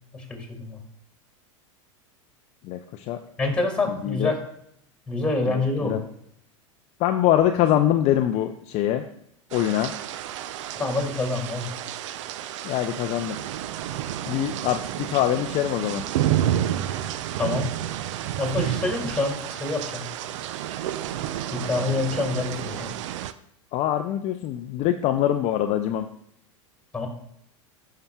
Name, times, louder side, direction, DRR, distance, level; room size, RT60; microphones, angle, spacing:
voice 1, 0.1-0.8 3.4-4.4 5.1-6.0 10.8-11.7 17.4-17.7 18.4-20.1 21.5-22.9 26.9-27.1, left 3 dB, 5° left, 3 dB, 2.2 m, -26 dB
voice 2, 2.6-3.2 4.0-4.3 5.5-6.0 7.0-9.0 9.5-9.9 12.6-13.4 14.3-16.1 23.7-26.1, left 12 dB, 40° left, 7 dB, 0.5 m, -24 dB
sound 1, 9.5-23.3, right 11 dB, 65° right, 0.4 m, -30 dB
12.0 x 5.7 x 2.3 m, 0.72 s
hypercardioid pair, 95°, 17 cm